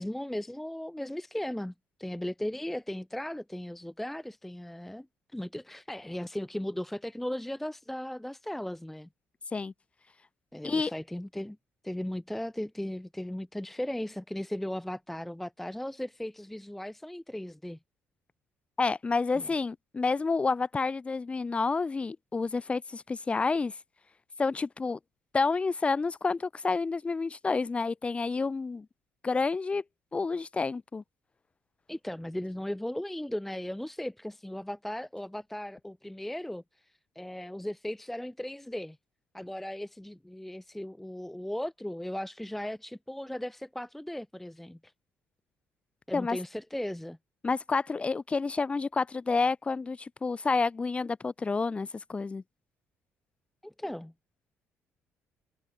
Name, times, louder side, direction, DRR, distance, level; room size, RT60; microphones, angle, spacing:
voice 1, 0.0-1.7 2.0-5.1 5.3-9.1 10.5-11.6 11.8-17.8 19.3-19.5 31.9-39.0 39.3-44.9 46.1-47.2 53.6-54.1, left 1 dB, 5° left, 0.5 m, -37 dB
voice 2, 18.8-23.7 24.4-25.0 25.3-28.9 29.2-29.8 30.1-31.0 46.1-46.4 47.4-52.4, left 4 dB, 25° left, 1.0 m, -29 dB
cardioid pair, 105°, 5 cm